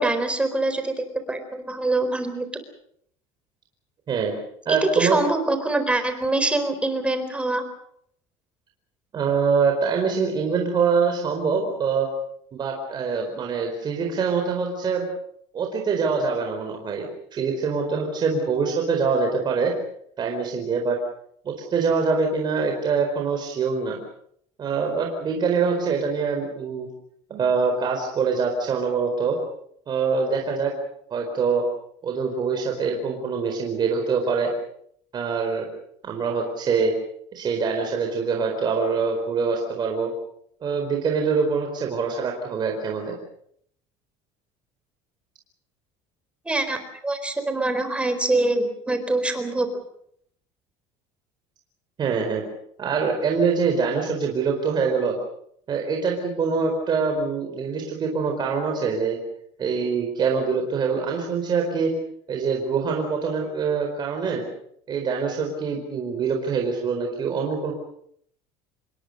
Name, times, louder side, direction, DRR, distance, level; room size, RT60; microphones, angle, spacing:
voice 1, 0.0-2.5 4.7-7.6 46.4-46.8 47.0-49.7, right 2 dB, 10° right, 8 dB, 4.2 m, -24 dB
voice 2, 4.6-5.2 9.1-12.1 12.5-15.0 15.5-19.7 20.2-21.0 21.4-24.0 24.6-26.9 27.3-29.4 29.9-30.7 31.1-31.6 32.0-34.5 35.1-35.6 36.0-36.9 37.3-40.1 40.6-43.2 52.0-52.4 52.8-55.2 55.7-59.2 59.6-61.9 62.3-64.4 64.9-67.7, right 5 dB, 30° right, 2 dB, 4.5 m, -24 dB
27.0 x 22.5 x 6.7 m, 0.69 s
cardioid pair, 145°, 13 cm